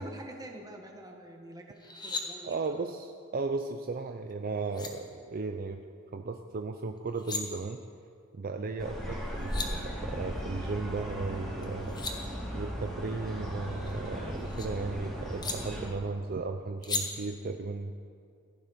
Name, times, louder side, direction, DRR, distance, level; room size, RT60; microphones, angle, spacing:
voice 1, 0.0-2.8, right 1 dB, 15° right, 2 dB, 1.5 m, -46 dB
sound 1, 1.8-2.2 4.3-4.4 4.7-4.9 7.0-7.4 9.1-9.2 9.3-9.7 11.6-12.2 13.6-14.7 15.4-15.6 16.8-17.0, left 3 dB, 20° left, 1.3 m, -36 dB
voice 2, 2.4-5.8 6.1-7.8 8.3-17.9, right 3 dB, 40° right, 6 dB, 0.5 m, -35 dB
sound 2, 8.8-15.9, equal, ahead, 2.9 m, -37 dB
15.5 x 11.0 x 5.7 m, 2.4 s
head